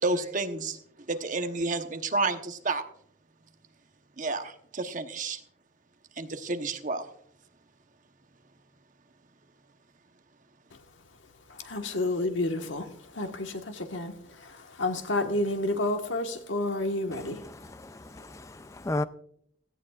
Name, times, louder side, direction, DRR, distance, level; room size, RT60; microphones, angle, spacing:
voice 1, 0.0-0.8 1.1-2.8 4.2-5.4 6.2-7.1, right 3 dB, 45° right, 1.0 m, -30 dB
voice 2, 11.5-17.5, left 2 dB, 80° left, 1.5 m, -30 dB
voice 3, 17.1-19.0, left 2 dB, 15° left, 0.4 m, -35 dB
17.0 x 14.5 x 2.4 m
head